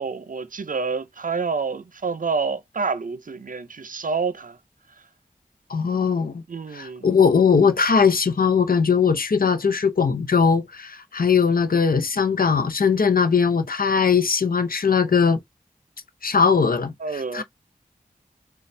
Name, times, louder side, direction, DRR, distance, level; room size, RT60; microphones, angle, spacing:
voice 1, 0.0-4.6 6.5-7.1 17.0-17.4, right 4 dB, 65° right, 0.5 m, -28 dB
voice 2, 5.7-6.4 6.7-15.4 16.2-17.4, left 6 dB, 75° left, 0.6 m, -20 dB
4.1 x 2.3 x 3.2 m
wide cardioid pair, 45°, 15 cm